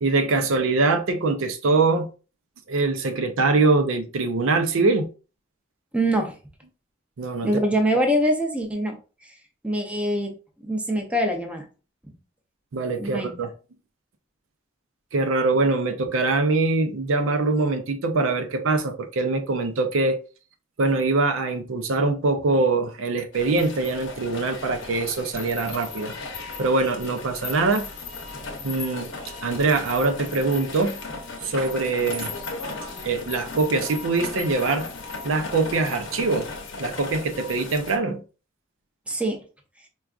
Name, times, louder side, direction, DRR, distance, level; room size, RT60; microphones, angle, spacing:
voice 1, 0.0-2.1 2.7-5.1 7.2-7.5 12.7-13.5 15.1-20.2 20.8-26.1 26.6-27.9 28.6-29.1 29.4-31.0 31.4-32.3 33.0-34.9 35.2-36.5 36.8-38.2, right 3 dB, 75° right, 0.5 m, -23 dB
voice 2, 5.9-6.3 7.4-8.9 9.6-10.3 10.6-11.6 13.0-13.3 39.1-39.4, equal, 5° right, 0.5 m, -23 dB
sound 1, 23.3-38.0, left 3 dB, 70° left, 0.8 m, -36 dB
4.5 x 2.4 x 2.4 m
head